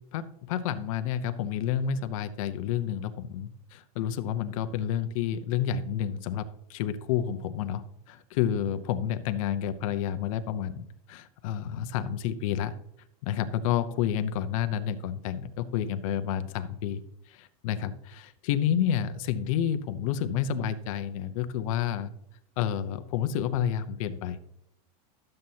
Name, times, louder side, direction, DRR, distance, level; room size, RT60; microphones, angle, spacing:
voice 1, 0.0-12.7 13.2-17.0 17.3-22.1 22.6-24.4, left 9 dB, 60° left, 11 dB, 0.8 m, -30 dB
12.0 x 7.6 x 2.8 m, 0.74 s
supercardioid pair, 165°, 20 cm